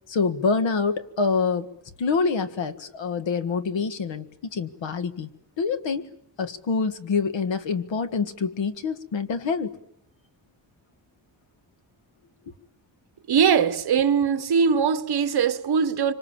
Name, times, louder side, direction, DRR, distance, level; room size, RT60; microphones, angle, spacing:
voice 1, 0.1-1.7 2.0-5.3 5.6-6.1 6.4-9.8, left 4 dB, 75° left, 1.8 m, -26 dB
voice 2, 13.3-16.1, right 6 dB, 55° right, 1.4 m, -21 dB
25.5 x 25.5 x 7.3 m
wide cardioid pair, 175°, 45 cm